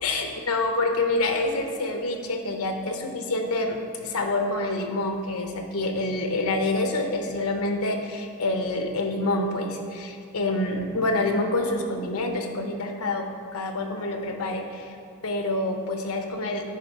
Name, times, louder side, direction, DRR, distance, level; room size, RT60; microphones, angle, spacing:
voice 1, 0.0-13.3 13.5-15.0 15.2-16.6, left 2 dB, 75° left, 4 dB, 0.8 m, -27 dB
9.6 x 3.3 x 4.7 m, 2.3 s
head